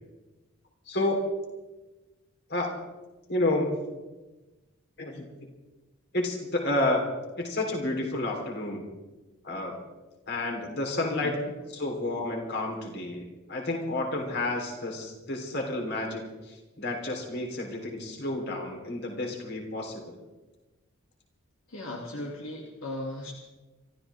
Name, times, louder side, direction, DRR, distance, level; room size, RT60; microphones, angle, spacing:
voice 1, 0.9-1.3 2.5-2.8 3.3-3.8 5.0-5.2 6.1-7.1 7.4-8.9 9.4-9.8 10.3-11.3 11.7-20.0, left 2 dB, 50° left, 1 dB, 3.6 m, -30 dB
voice 2, 11.1-11.5 21.7-23.3, left 1 dB, 75° left, -2 dB, 2.6 m, -37 dB
27.0 x 14.0 x 3.6 m, 1.1 s
head